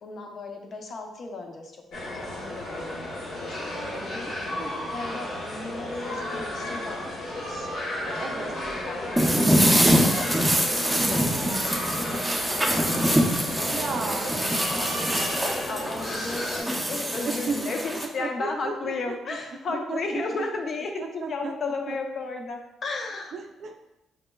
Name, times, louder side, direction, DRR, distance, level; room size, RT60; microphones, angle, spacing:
voice 1, 0.0-7.7 8.0-8.4 8.7-11.5 11.8-23.3, left 3 dB, 50° left, 3 dB, 0.5 m, -35 dB
sound 1, 1.9-16.6, left 1 dB, 70° left, 1.0 m, -34 dB
voice 2, 4.6-4.9 8.2-8.6 13.6-14.3 17.3-17.7 18.0-19.1 19.7-20.0 21.0-21.5 21.9-22.0 23.3-23.7, right 4 dB, 60° right, 4 dB, 0.4 m, -34 dB
sound 2, 9.2-18.1, equal, 5° right, 0.5 m, -24 dB
5.1 x 2.1 x 2.2 m, 0.89 s
cardioid pair, 90°, 0 cm